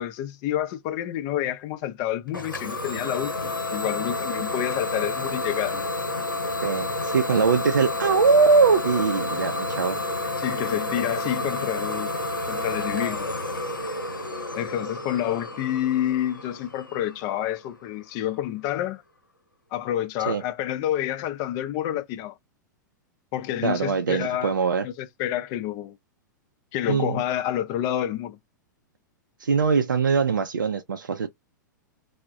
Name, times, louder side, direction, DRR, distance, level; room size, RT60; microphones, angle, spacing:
voice 1, 0.0-5.8 10.4-12.1 12.5-13.3 14.5-19.0 19.7-22.4 23.3-24.5 24.8-26.0 26.7-28.4, left 12 dB, 35° left, 0.4 m, -28 dB
Idling / Domestic sounds home sounds, 2.3-17.9, left 2 dB, 90° left, 0.8 m, -30 dB
voice 2, 6.6-10.0 20.3-20.4 23.6-24.9 26.9-27.2 29.4-31.3, right 5 dB, 75° right, 0.4 m, -22 dB
2.2 x 2.1 x 3.5 m
figure-of-eight pair, 100°, 11 cm